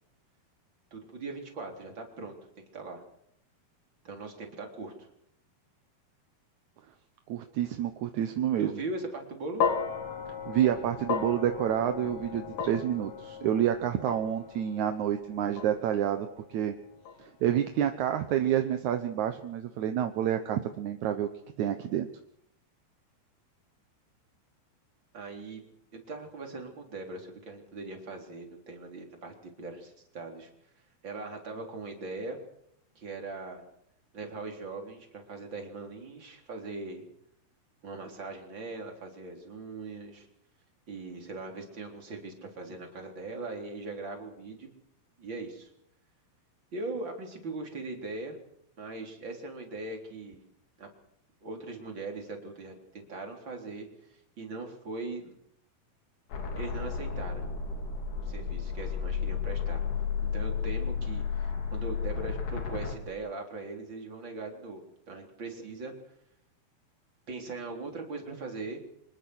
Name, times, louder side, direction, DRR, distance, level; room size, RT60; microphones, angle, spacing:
voice 1, 0.9-3.0 4.0-5.1 8.6-9.6 25.1-25.6 25.9-30.5 31.0-32.4 33.0-33.6 34.1-37.0 37.8-40.3 40.9-44.7 45.2-45.7 46.7-48.4 48.8-50.4 50.8-50.9 51.4-55.4 56.5-57.5 58.2-59.8 60.2-65.9 67.3-68.8, right 3 dB, 30° right, 3 dB, 4.2 m, -40 dB
voice 2, 7.3-8.8 10.5-16.8 17.2-21.3 21.6-22.1, right 10 dB, 65° right, 7 dB, 2.0 m, -28 dB
sound 1, 9.6-17.9, left 6 dB, 55° left, 3.5 m, -36 dB
sound 2, 56.3-63.0, left 6 dB, 85° left, 5.2 m, -32 dB
25.5 x 20.5 x 6.4 m, 0.74 s
omnidirectional pair, 4.4 m